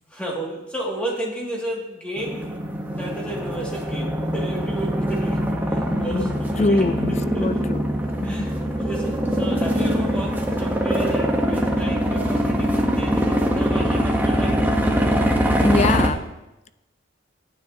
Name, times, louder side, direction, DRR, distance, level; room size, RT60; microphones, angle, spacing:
voice 1, 0.1-5.4 5.7-6.9 7.3-7.6 8.2-14.6, right 1 dB, 5° left, -4 dB, 2.1 m, -33 dB
sound 1, 2.2-16.1, equal, 10° right, 0.9 m, -23 dB
voice 2, 6.1-7.8 8.2-8.5 15.6-16.2, left 2 dB, 30° left, 12 dB, 0.3 m, -23 dB
14.0 x 9.5 x 2.8 m, 0.97 s
head